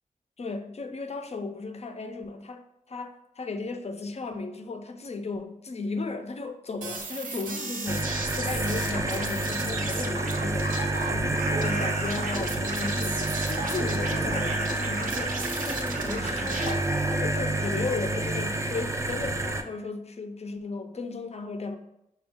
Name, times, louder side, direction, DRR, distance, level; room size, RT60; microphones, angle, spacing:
voice 1, 0.4-21.8, left 3 dB, 45° left, 7 dB, 0.5 m, -35 dB
sound 1, 6.8-16.7, right 3 dB, 70° right, 0.6 m, -35 dB
sound 2, 7.9-19.6, right 2 dB, 20° right, 0.4 m, -29 dB
5.9 x 2.3 x 3.5 m, 0.83 s
wide cardioid pair, 70°, 15 cm